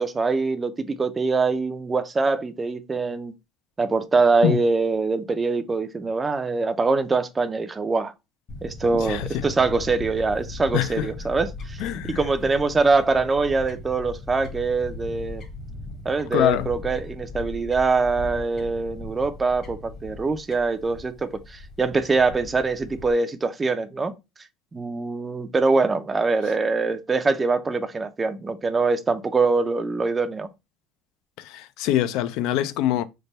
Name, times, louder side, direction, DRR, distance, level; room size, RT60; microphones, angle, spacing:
voice 1, 0.0-3.3 3.8-8.1 8.6-15.4 16.1-24.1 24.7-30.5, right 3 dB, 15° right, 0.4 m, -23 dB
Fowl / Bird, 8.5-23.1, left 2 dB, 40° left, 1.0 m, -38 dB
voice 2, 9.0-9.4 10.7-11.1 11.8-12.2 16.3-16.7 31.4-33.0, left 12 dB, 70° left, 0.3 m, -24 dB
3.3 x 2.2 x 3.9 m
cardioid pair, 150°, 0 cm